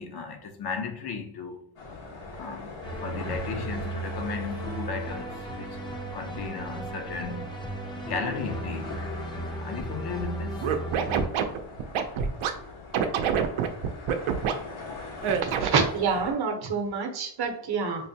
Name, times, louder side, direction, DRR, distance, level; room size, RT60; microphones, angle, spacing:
voice 1, 0.0-1.6 2.3-5.8 6.1-7.5 8.0-9.1 9.5-10.8, left 5 dB, 55° left, 0.6 m, -35 dB
sound 1, 1.8-16.3, left 3 dB, 75° left, 1.2 m, -42 dB
sound 2, 2.8-11.3, right 2 dB, 10° left, 0.5 m, -36 dB
Scratching (performance technique), 10.6-12.5 12.9-14.5 15.2-15.9, right 8 dB, 85° right, 0.6 m, -26 dB
voice 2, 15.3-18.1, right 5 dB, 50° right, 0.8 m, -27 dB
5.4 x 2.1 x 2.7 m
cardioid pair, 125°, 48 cm